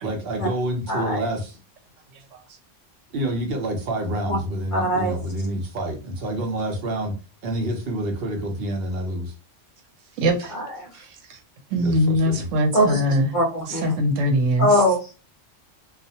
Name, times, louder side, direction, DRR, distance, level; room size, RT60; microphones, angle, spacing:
voice 1, 0.0-1.6 3.1-7.1 7.4-9.3 11.8-12.5, right 1 dB, 60° right, 2 dB, 0.8 m, -28 dB
voice 2, 0.9-1.3 4.3-4.4 4.7-5.2 10.5-10.9 12.7-13.0 13.3-14.0 14.6-15.1, equal, 55° left, 0 dB, 0.6 m, -22 dB
voice 3, 10.2-10.5 11.3-11.4 11.7-13.3 13.7-14.7, equal, 85° right, 5 dB, 1.0 m, -21 dB
2.3 x 2.0 x 2.6 m, 0.32 s
omnidirectional pair, 1.3 m